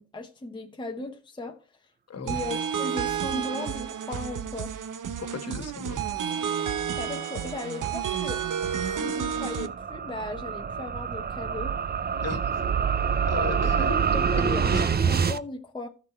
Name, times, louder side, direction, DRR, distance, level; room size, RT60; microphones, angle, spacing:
voice 1, 0.0-1.6 2.2-4.7 7.0-8.5 8.8-11.7 14.1-15.9, left 2 dB, 15° left, 0.9 m, -36 dB
voice 2, 2.1-2.4 5.2-6.0 12.2-12.6 13.3-14.0 14.7-14.9, left 4 dB, 45° left, 1.6 m, -35 dB
sound 1, 2.3-9.7, right 8 dB, 60° right, 1.0 m, -31 dB
sound 2, 7.6-15.4, right 6 dB, 25° right, 0.6 m, -27 dB
14.0 x 6.1 x 4.4 m
cardioid pair, 125°, 36 cm